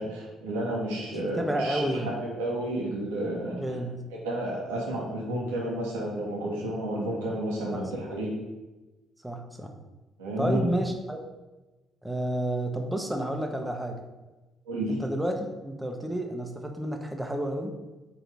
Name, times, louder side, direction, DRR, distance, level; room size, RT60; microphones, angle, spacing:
voice 1, 0.0-3.6 4.2-8.3 10.2-10.6 14.7-15.0, right 1 dB, 80° right, -3 dB, 1.4 m, -31 dB
voice 2, 1.4-2.1 3.6-4.0 7.7-7.9 9.2-9.7 10.4-11.2 12.0-14.0 15.0-17.7, right 1 dB, 10° right, 3 dB, 1.0 m, -30 dB
4.5 x 3.9 x 5.3 m, 1.1 s
hypercardioid pair, 50°, 0 cm